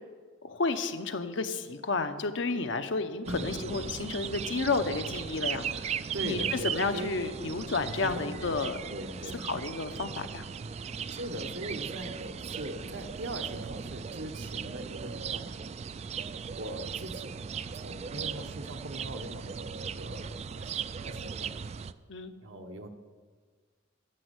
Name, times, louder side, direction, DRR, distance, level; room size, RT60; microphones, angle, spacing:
voice 1, 0.4-5.9 6.2-8.8 9.5-10.5 22.1-22.3, left 3 dB, 70° left, 8 dB, 0.8 m, -31 dB
sound 1, 3.2-21.9, right 7 dB, 35° right, 0.3 m, -38 dB
voice 2, 3.2-3.6 6.1-7.1 8.0-9.6 11.1-15.5 16.5-17.4 17.7-21.6 22.4-22.9, right 1 dB, 70° right, 5 dB, 1.1 m, -40 dB
10.5 x 7.5 x 8.1 m, 1.5 s
head